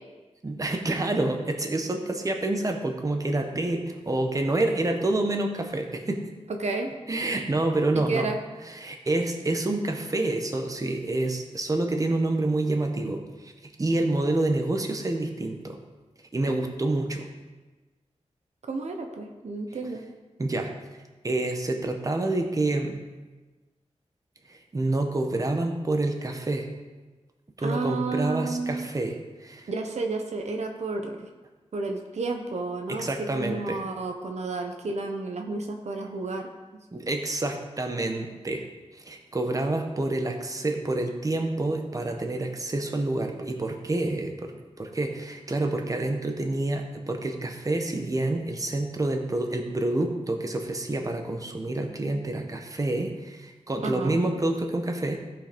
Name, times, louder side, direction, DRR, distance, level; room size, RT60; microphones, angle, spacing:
voice 1, 0.4-6.3 7.1-8.3 8.7-15.8 16.3-17.3 20.4-20.7 21.2-23.0 24.5-26.7 27.6-29.7 32.9-33.8 36.9-38.6 38.9-44.5 44.8-55.2, right 2 dB, 30° right, 4 dB, 1.2 m, -28 dB
voice 2, 6.6-6.9 7.9-8.4 18.7-20.0 27.6-28.9 29.7-31.3 31.7-33.1 33.3-36.5 53.8-54.2, right 3 dB, 70° right, 3 dB, 1.1 m, -31 dB
15.0 x 5.6 x 5.3 m, 1.2 s
wide cardioid pair, 115°, 12 cm